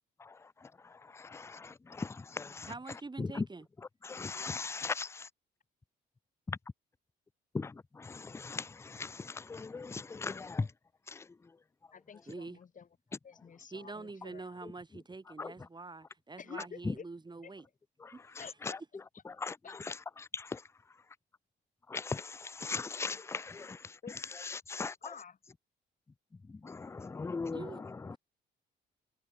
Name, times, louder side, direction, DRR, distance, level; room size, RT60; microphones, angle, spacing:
voice 1, 0.8-2.7 3.2-3.5 4.0-5.3 6.5-6.6 7.5-10.7 11.1-11.3 15.4-15.5 16.9-17.0 18.0-18.8 19.3-20.6 21.9-24.0 24.4-24.9 26.5-28.2, left 4 dB, 15° left, 0.4 m, -39 dB
voice 2, 2.4-3.7 12.3-12.6 13.7-17.7 18.1-18.5 27.5-28.2, right 3 dB, 20° right, 2.6 m, -46 dB
voice 3, 11.9-12.9 13.2-14.6 16.4-17.1 17.4-17.5 18.4-18.8 19.6-20.0 24.0-24.1 24.4-25.4, left 6 dB, 40° left, 1.4 m, -50 dB
cardioid pair, 90°, 20 cm